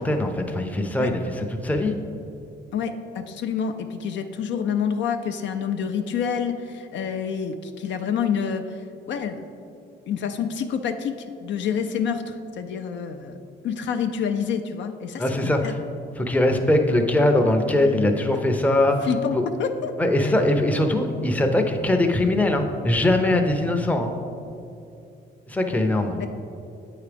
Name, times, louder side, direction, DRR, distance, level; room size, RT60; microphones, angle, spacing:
voice 1, 0.0-1.9 15.2-15.7 16.2-19.0 19.3-19.4 20.0-24.2 25.5-26.2, left 1 dB, 5° left, 4 dB, 0.5 m, -21 dB
voice 2, 2.7-9.4 10.1-11.2 11.4-13.4 13.6-15.7 19.0-19.9 20.2-20.3 26.2-26.3, left 7 dB, 65° left, 7 dB, 0.4 m, -28 dB
8.1 x 4.8 x 3.4 m, 2.6 s
cardioid pair, 90°, 20 cm